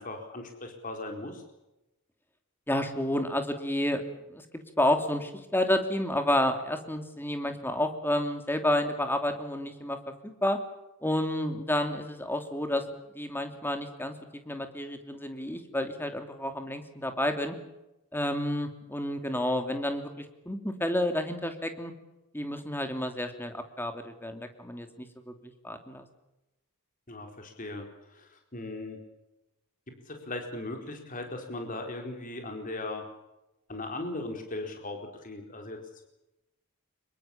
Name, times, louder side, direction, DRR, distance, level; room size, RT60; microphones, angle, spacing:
voice 1, 0.0-1.4 27.1-29.0 30.1-33.0 33.7-35.8, left 2 dB, 35° left, 3 dB, 4.3 m, -38 dB
voice 2, 2.7-4.0 4.3-4.4 4.8-10.0 10.4-10.6 11.0-12.8 13.1-14.1 14.4-17.5 18.1-21.9 22.3-26.1, left 1 dB, 10° left, 6 dB, 2.9 m, -30 dB
26.0 x 23.0 x 7.3 m, 0.93 s
head